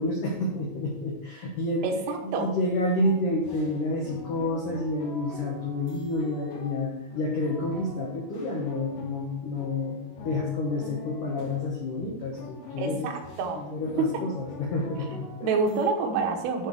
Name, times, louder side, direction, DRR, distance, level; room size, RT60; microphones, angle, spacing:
voice 1, 0.0-1.9 2.2-13.1 13.5-15.5, left 2 dB, 80° left, -3 dB, 1.9 m, -29 dB
voice 2, 1.8-2.5 12.8-13.6 14.0-14.1 15.4-16.7, right 4 dB, 85° right, 3 dB, 3.7 m, -27 dB
sound 1, 3.0-15.9, left 1 dB, 55° left, 3.5 m, -44 dB
11.0 x 4.5 x 4.8 m, 0.89 s
omnidirectional pair, 5.8 m